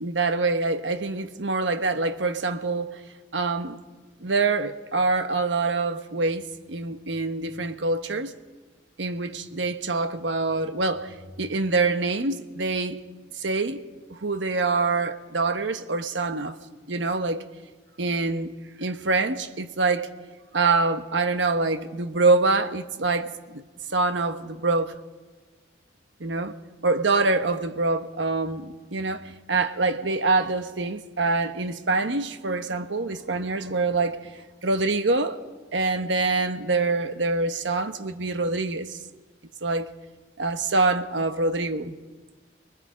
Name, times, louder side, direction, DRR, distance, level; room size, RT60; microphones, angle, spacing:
voice 1, 0.0-3.0 3.3-3.8 4.2-8.3 9.0-13.0 13.4-13.8 14.1-16.6 16.9-17.4 18.0-18.5 18.8-20.1 20.5-23.6 23.9-24.9 26.2-26.5 26.8-34.2 34.6-35.4 35.7-39.0 39.6-39.9 40.4-42.0, right 3 dB, 90° right, 1.1 m, -25 dB
24.5 x 20.5 x 5.2 m
head